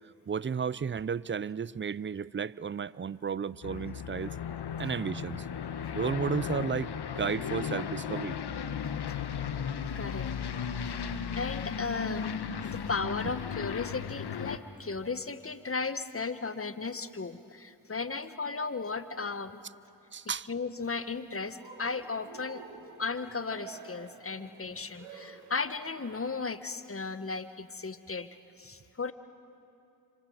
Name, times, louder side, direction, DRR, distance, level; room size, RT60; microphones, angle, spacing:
voice 1, 0.3-4.3 4.8-5.4 5.9-8.4 12.6-12.8 20.1-20.5, right 6 dB, 25° right, 0.6 m, -33 dB
Aircraft, 3.6-14.6, left 7 dB, 55° left, 1.6 m, -35 dB
voice 2, 9.9-10.3 10.8-11.0 11.3-12.3 12.6-19.6 20.5-22.6 23.0-28.3 28.6-29.1, left 4 dB, 30° left, 1.6 m, -35 dB
Cheering, 21.5-26.5, right 5 dB, 80° right, 3.0 m, -50 dB
27.5 x 26.5 x 8.1 m
hypercardioid pair, 40°, 47 cm